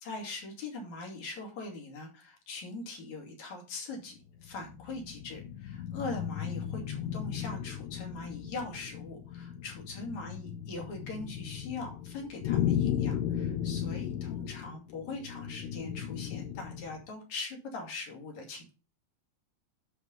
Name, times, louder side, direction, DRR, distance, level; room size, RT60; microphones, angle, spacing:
voice 1, 0.0-18.7, left 3 dB, 60° left, 0 dB, 3.9 m, -41 dB
sound 1, 4.4-17.0, left 9 dB, 80° left, 1.7 m, -35 dB
11.0 x 4.7 x 5.5 m, 0.33 s
omnidirectional pair, 3.9 m